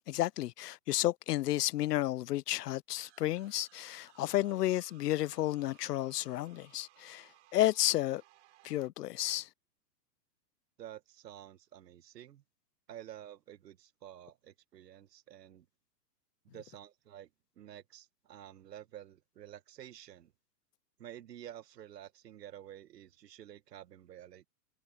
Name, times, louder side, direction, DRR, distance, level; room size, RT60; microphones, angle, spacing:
voice 1, 0.1-8.2 8.6-9.5, left 14 dB, 70° left, 0.6 m, -32 dB
sound 1, 3.0-8.9, right 15 dB, 45° right, 6.3 m, -63 dB
voice 2, 10.8-12.4 12.9-15.7 16.5-17.3 17.6-20.3 21.0-24.5, right 11 dB, 75° right, 1.8 m, -50 dB
hypercardioid pair, 175°, 50 cm